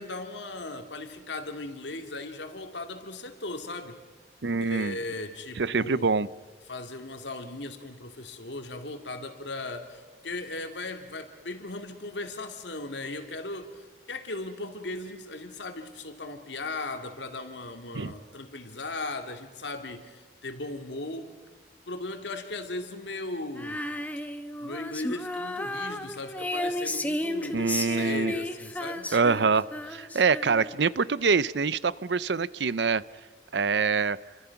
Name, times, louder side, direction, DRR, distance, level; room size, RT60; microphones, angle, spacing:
voice 1, 0.0-4.0 4.6-6.1 6.7-21.4 21.9-23.8 24.6-29.1, left 2 dB, 80° left, 6 dB, 2.4 m, -37 dB
voice 2, 4.4-5.0 5.6-6.3 17.9-18.1 27.5-28.3 29.1-33.0 33.5-34.2, right 5 dB, 75° right, 19 dB, 0.6 m, -25 dB
Female singing, 23.6-30.9, left 1 dB, 10° left, 1.1 m, -33 dB
29.5 x 25.0 x 5.9 m, 1.4 s
head